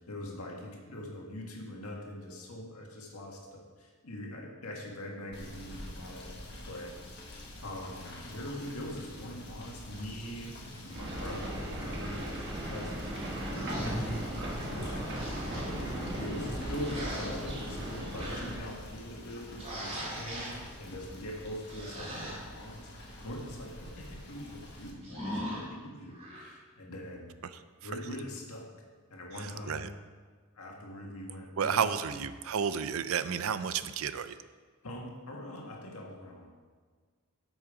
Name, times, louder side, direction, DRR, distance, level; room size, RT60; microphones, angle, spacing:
voice 1, 0.1-6.4 6.7-13.2 13.5-27.4 27.8-28.7 29.1-29.9 30.5-32.2 34.8-36.5, left 1 dB, 85° left, -1 dB, 1.7 m, -43 dB
Rain / Motor vehicle (road), 5.3-24.9, left 1 dB, 50° left, 1.4 m, -45 dB
sound 1, 10.9-18.6, right 1 dB, 50° right, 1.3 m, -37 dB
sound 2, 13.5-14.1 15.0-15.9 16.8-17.8 18.2-18.7 19.6-20.6 21.7-22.4 25.0-25.6 26.1-26.5, equal, 30° right, 2.1 m, -40 dB
voice 2, 29.4-29.9 31.6-34.4, right 7 dB, 70° right, 13 dB, 0.4 m, -32 dB
8.8 x 6.3 x 4.9 m, 1.5 s
head